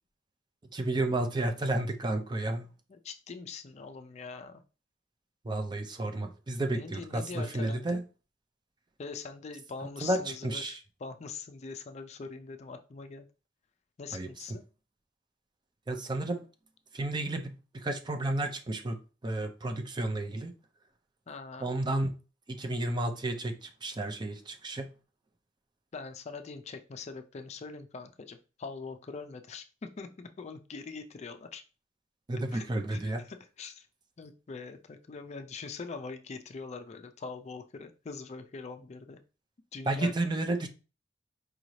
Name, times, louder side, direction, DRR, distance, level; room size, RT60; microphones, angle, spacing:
voice 1, 0.7-2.7 5.4-8.0 10.0-10.8 14.1-14.6 15.9-16.4 16.9-20.5 21.6-22.1 22.5-24.9 32.3-33.2 39.8-40.7, right 2 dB, 25° right, 0.5 m, -32 dB
voice 2, 2.9-4.6 6.7-8.0 9.0-13.3 14.0-14.6 21.3-21.7 25.9-31.6 32.5-32.7 32.9-33.9 34.2-39.2 39.7-40.1, left 4 dB, 35° left, 0.4 m, -43 dB
4.8 x 2.6 x 3.1 m
head